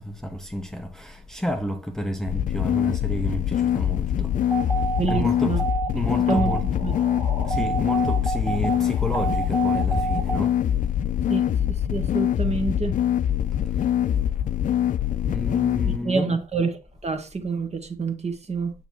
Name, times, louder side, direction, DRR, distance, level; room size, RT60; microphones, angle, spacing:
voice 1, 0.0-4.3 5.0-5.5 5.9-6.6 7.5-10.5 15.3-16.4, equal, 5° left, 0.8 m, -30 dB
sound 1, 2.3-16.0, left 10 dB, 45° left, 0.4 m, -24 dB
sound 2, 4.5-10.4, right 6 dB, 55° right, 2.3 m, -29 dB
voice 2, 5.0-5.6 6.2-6.5 6.8-6.9 11.3-12.9 15.8-16.8 17.0-18.7, right 4 dB, 35° right, 1.4 m, -27 dB
6.8 x 5.7 x 3.1 m
hypercardioid pair, 50°, 19 cm